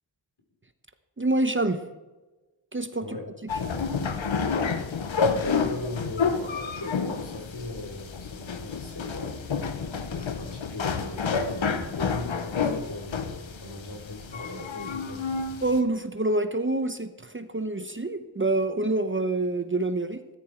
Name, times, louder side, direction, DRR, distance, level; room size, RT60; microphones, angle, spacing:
voice 1, 1.2-1.8 2.7-3.2 15.6-20.2, right 2 dB, 25° right, 10 dB, 0.9 m, -26 dB
sound 1, 3.5-15.8, left 5 dB, 80° left, 1.1 m, -30 dB
voice 2, 5.1-9.4 10.1-15.5, left 2 dB, 60° left, 2 dB, 3.3 m, -38 dB
14.0 x 11.0 x 4.6 m, 1.2 s
cardioid pair, 40°, 46 cm